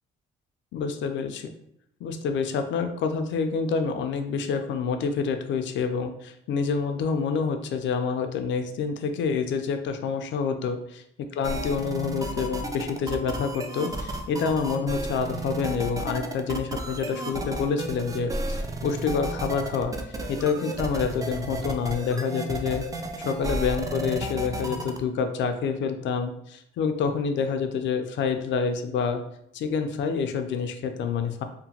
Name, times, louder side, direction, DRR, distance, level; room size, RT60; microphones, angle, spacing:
voice 1, 0.7-1.5 2.0-11.0 11.3-19.9 20.3-22.9 23.2-29.2 29.5-31.4, left 5 dB, 70° left, 7 dB, 0.4 m, -27 dB
sound 1, 11.4-25.0, right 1 dB, 15° right, 0.3 m, -33 dB
2.8 x 2.1 x 2.8 m, 0.75 s
cardioid pair, 90°, 20 cm